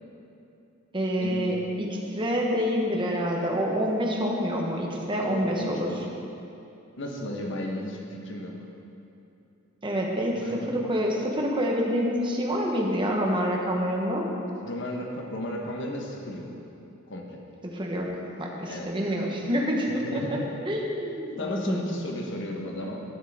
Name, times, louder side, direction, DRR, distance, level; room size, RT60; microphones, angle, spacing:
voice 1, 0.9-5.9 9.8-14.3 17.6-20.2 20.7-21.8, equal, 25° right, -1 dB, 1.1 m, -27 dB
voice 2, 5.2-6.1 7.0-8.6 10.4-10.8 14.6-16.5 17.1-17.4 18.7-18.9 20.0-20.5 21.4-23.0, left 1 dB, 65° left, 0 dB, 1.2 m, -34 dB
11.5 x 7.4 x 3.6 m, 2.7 s
head